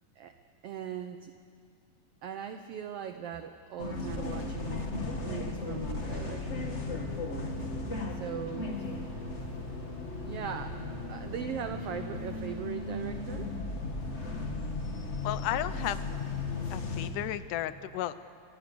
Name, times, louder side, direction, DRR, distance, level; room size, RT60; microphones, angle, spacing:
voice 1, 0.6-1.3 2.2-4.9 5.2-6.8 8.1-8.7 10.2-10.8 11.1-13.5, right 8 dB, 75° right, 8 dB, 1.4 m, -39 dB
sound 1, 3.8-17.1, left 3 dB, 25° left, 1.6 m, -36 dB
sound 2, 8.5-14.2, left 1 dB, 5° left, 6.3 m, -55 dB
voice 2, 15.2-16.0 16.7-18.2, left 13 dB, 80° left, 14 dB, 2.3 m, -33 dB
25.0 x 22.0 x 6.9 m, 2.2 s
omnidirectional pair, 3.7 m